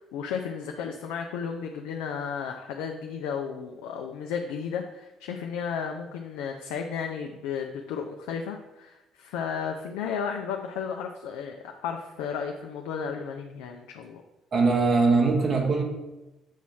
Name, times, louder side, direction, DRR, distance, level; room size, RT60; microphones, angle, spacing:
voice 1, 0.0-14.2, left 6 dB, 80° left, 3 dB, 0.5 m, -33 dB
voice 2, 14.5-15.8, right 4 dB, 55° right, 1 dB, 1.2 m, -21 dB
7.2 x 3.1 x 5.6 m, 1.0 s
hypercardioid pair, 55°, 0 cm